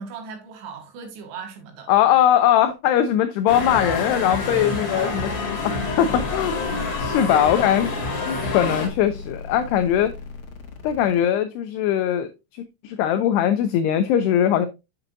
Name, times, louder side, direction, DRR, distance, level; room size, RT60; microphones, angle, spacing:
voice 1, 0.0-1.9 4.4-4.9 7.3-7.7, right 5 dB, 75° right, 3.8 m, -38 dB
voice 2, 1.9-5.3 5.6-6.5 7.0-7.9 8.3-10.1 10.8-12.3 12.8-14.7, left 10 dB, 85° left, 2.3 m, -20 dB
sound 1, 3.5-8.9, left 3 dB, 45° left, 2.2 m, -27 dB
sound 2, 4.5-11.2, left 4 dB, 70° left, 2.0 m, -37 dB
7.8 x 7.4 x 2.5 m
omnidirectional pair, 5.4 m